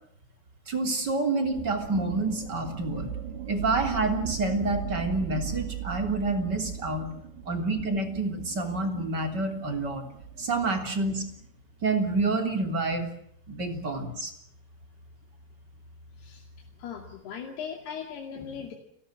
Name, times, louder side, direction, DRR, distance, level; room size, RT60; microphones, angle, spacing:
voice 1, 0.7-3.1 3.5-7.1 7.4-10.0 10.4-11.2 11.8-13.1 13.5-14.3, right 3 dB, 25° right, 5 dB, 3.3 m, -28 dB
sound 1, 1.4-11.5, right 11 dB, 85° right, 4.2 m, -39 dB
voice 2, 16.2-16.5 16.8-18.7, left 7 dB, 70° left, 2 dB, 4.5 m, -38 dB
30.0 x 20.0 x 7.5 m, 0.71 s
omnidirectional pair, 4.9 m